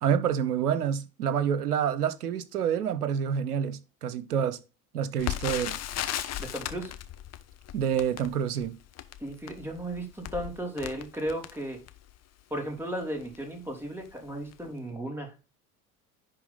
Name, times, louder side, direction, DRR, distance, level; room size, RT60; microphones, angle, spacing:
voice 1, 0.0-4.6 4.9-5.7 7.7-8.7, right 8 dB, 80° right, 0.9 m, -28 dB
Crackle, 5.2-12.2 12.8-12.9 13.2-13.4 14.0-14.3 14.5-14.6, left 11 dB, 35° left, 1.0 m, -37 dB
voice 2, 6.4-6.9 9.2-11.8 12.5-15.3, right 1 dB, 5° right, 3.2 m, -35 dB
10.5 x 3.8 x 4.0 m
figure-of-eight pair, 70°, 45 cm